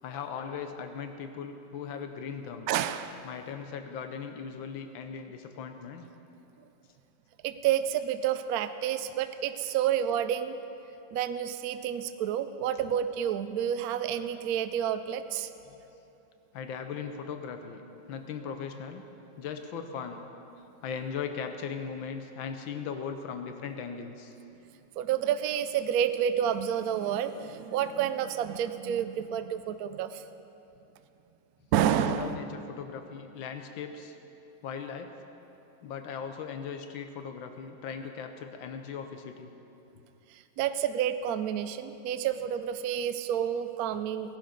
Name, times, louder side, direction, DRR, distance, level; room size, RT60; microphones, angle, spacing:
voice 1, 0.0-2.7 3.2-6.0 15.7-15.8 16.5-19.0 19.4-20.2 20.8-24.4 32.1-34.2 34.6-35.1 35.8-39.5, left 6 dB, 80° left, 7 dB, 1.5 m, -38 dB
voice 2, 2.7-3.3 7.4-10.6 11.1-15.5 25.0-30.2 31.7-32.4 40.3-44.4, right 9 dB, 75° right, 10 dB, 0.8 m, -29 dB
17.5 x 11.5 x 5.1 m, 2.9 s
omnidirectional pair, 2.1 m